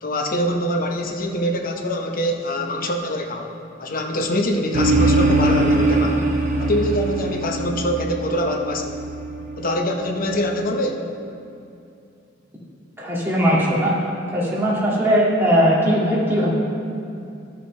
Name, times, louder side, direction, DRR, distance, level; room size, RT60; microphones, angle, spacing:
voice 1, 0.0-6.2 6.6-9.0 9.6-11.1, equal, 50° left, 3 dB, 0.9 m, -24 dB
sound 1, 4.7-10.4, right 2 dB, 45° right, 1.1 m, -22 dB
voice 2, 13.0-13.9 14.3-16.5, equal, 15° right, -7 dB, 2.0 m, -19 dB
12.0 x 6.8 x 3.2 m, 2.6 s
head